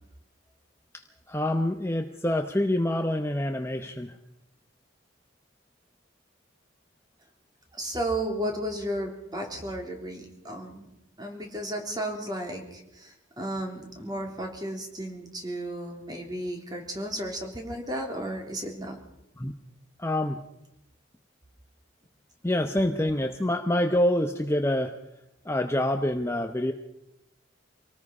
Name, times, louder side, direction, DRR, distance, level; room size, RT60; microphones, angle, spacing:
voice 1, 0.9-4.2 19.4-19.5 20.0-20.4 22.4-24.9 25.4-26.7, left 1 dB, 15° left, 5 dB, 0.8 m, -26 dB
voice 2, 7.7-10.9 11.2-19.0, right 1 dB, 20° right, 2 dB, 3.5 m, -34 dB
26.0 x 18.5 x 5.5 m, 0.86 s
head